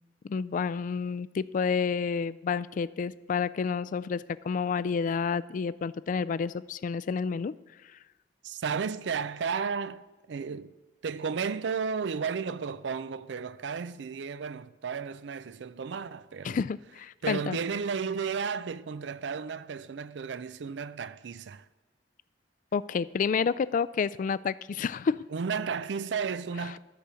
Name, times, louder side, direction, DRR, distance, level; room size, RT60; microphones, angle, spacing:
voice 1, 0.3-7.5 16.4-17.6 22.7-25.2, left 5 dB, 50° left, 0.3 m, -29 dB
voice 2, 8.4-10.7 11.0-16.6 17.2-21.7 25.3-26.8, right 6 dB, 85° right, 0.4 m, -33 dB
13.0 x 5.0 x 6.8 m
head